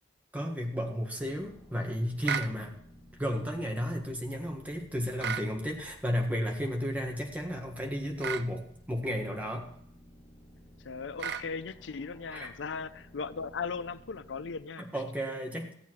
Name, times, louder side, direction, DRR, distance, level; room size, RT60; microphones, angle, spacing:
voice 1, 0.3-2.8 3.2-9.7 12.3-12.5 14.8-15.7, equal, 10° right, 1 dB, 1.7 m, -33 dB
sound 1, 1.2-14.7, equal, 25° left, 1.3 m, -55 dB
sound 2, 2.2-2.5 5.2-5.5 8.2-8.5 11.2-11.5, right 7 dB, 65° right, 0.6 m, -33 dB
voice 2, 10.8-14.9, left 5 dB, 90° left, 14 dB, 0.5 m, -38 dB
14.0 x 8.5 x 4.7 m, 0.70 s
head